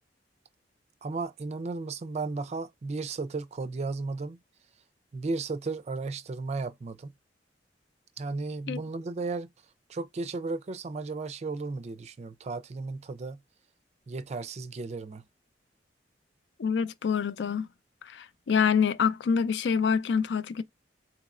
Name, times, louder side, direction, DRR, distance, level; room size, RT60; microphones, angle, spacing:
voice 1, 1.0-4.4 5.1-7.1 8.2-9.5 9.9-13.4 14.1-15.2, right 3 dB, 40° right, 0.4 m, -34 dB
voice 2, 16.6-17.7 18.0-20.6, left 6 dB, 70° left, 0.4 m, -26 dB
4.1 x 3.0 x 2.4 m
head